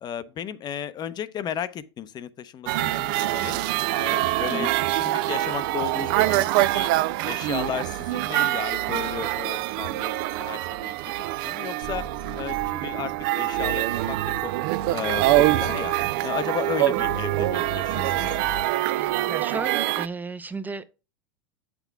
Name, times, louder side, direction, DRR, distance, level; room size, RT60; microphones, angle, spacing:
voice 1, 0.0-3.6 3.9-6.9 7.2-10.9 11.4-12.0 12.4-14.2 14.4-14.5 14.9-15.9 16.2-18.4, left 9 dB, 35° left, 0.7 m, -34 dB
sound 1, 2.7-20.1, right 16 dB, 60° right, 0.4 m, -25 dB
sound 2, 11.8-13.2 13.5-16.4 16.9-18.7, right 5 dB, 85° right, 1.1 m, -36 dB
voice 2, 18.9-21.0, right 4 dB, 15° right, 0.6 m, -34 dB
8.0 x 6.1 x 3.5 m
hypercardioid pair, 105°, 13 cm